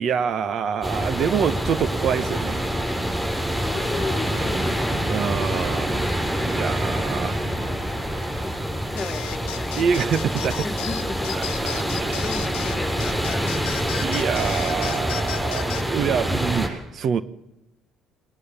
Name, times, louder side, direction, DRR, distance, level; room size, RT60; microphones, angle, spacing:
voice 1, 0.0-2.7 3.6-3.7 5.1-6.0 6.4-7.5 8.3-8.4 9.7-10.7 11.4-12.2 14.0-17.2, right 7 dB, 55° right, 15 dB, 1.2 m, -26 dB
sound 1, 0.8-16.7, equal, 10° right, 7.5 m, -26 dB
voice 2, 2.7-5.2 8.1-9.9 10.6-11.4 11.9-14.4, left 3 dB, 25° left, 10 dB, 1.6 m, -36 dB
sound 2, 9.0-15.9, left 17 dB, 85° left, 1.2 m, -35 dB
19.5 x 19.5 x 7.1 m, 0.92 s
supercardioid pair, 75°, 0 cm